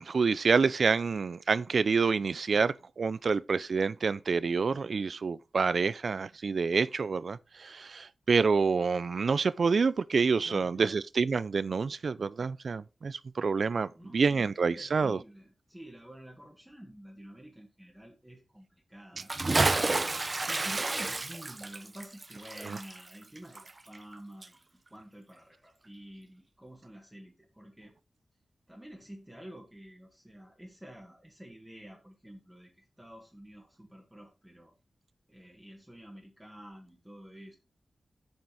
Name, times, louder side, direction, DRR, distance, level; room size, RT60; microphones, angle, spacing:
voice 1, 0.0-15.2 22.7-22.8, right 5 dB, 60° right, 0.4 m, -28 dB
voice 2, 10.5-11.0 13.9-19.3 20.5-27.9 28.7-34.7 35.3-37.6, equal, 5° right, 1.7 m, -49 dB
Bathtub (filling or washing) / Splash splatter, 19.2-24.2 24.4-24.5, right 2 dB, 30° right, 0.8 m, -30 dB
7.2 x 6.1 x 4.7 m
wide cardioid pair, 135°, 0 cm